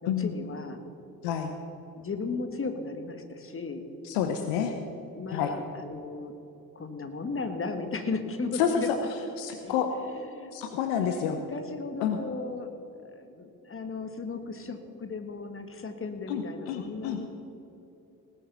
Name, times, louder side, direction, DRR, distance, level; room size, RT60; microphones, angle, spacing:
voice 1, 0.0-0.8 2.0-3.8 5.1-6.3 6.8-8.9 9.5-9.8 10.1-10.5 11.0-12.7 13.0-17.4, left 4 dB, 30° left, 7 dB, 1.7 m, -36 dB
voice 2, 4.0-4.7 5.3-5.5 8.6-9.0 9.4-9.9 10.5-11.4 12.0-12.2 16.3-17.4, left 8 dB, 70° left, 7 dB, 0.9 m, -29 dB
19.0 x 7.0 x 5.9 m, 2.8 s
figure-of-eight pair, 40°, 44 cm